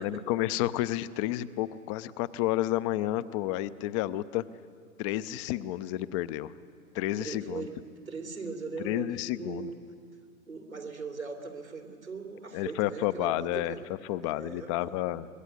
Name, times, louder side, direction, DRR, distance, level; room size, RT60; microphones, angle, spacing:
voice 1, 0.0-4.4 5.0-6.5 6.9-7.7 8.8-9.7 12.5-13.8 14.0-15.3, left 14 dB, 25° left, 16 dB, 0.5 m, -30 dB
voice 2, 7.2-7.7 8.1-9.8 10.5-13.9 14.2-14.9, right 4 dB, 85° right, 3 dB, 3.4 m, -40 dB
25.0 x 21.5 x 8.1 m, 2.2 s
figure-of-eight pair, 105°, 41 cm